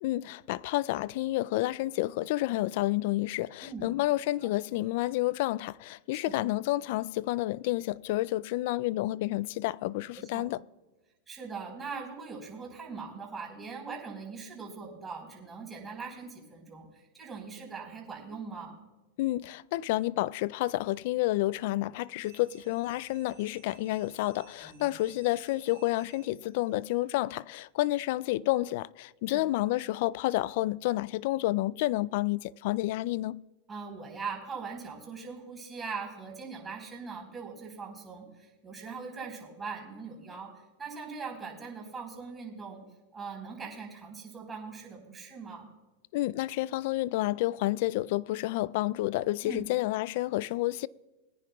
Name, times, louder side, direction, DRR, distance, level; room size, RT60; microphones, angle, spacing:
voice 1, 0.0-10.6 19.2-33.4 46.1-50.9, left 17 dB, 60° left, 0.3 m, -30 dB
voice 2, 3.6-4.0 4.4-4.5 10.1-10.5 11.3-18.8 24.6-24.9 29.3-29.5 33.7-42.8 43.1-45.7 49.4-49.6, right 5 dB, 15° right, 4.2 m, -41 dB
sound 1, 22.2-26.7, right 10 dB, 85° right, 2.0 m, -59 dB
22.5 x 9.9 x 2.3 m
supercardioid pair, 135°, 0 cm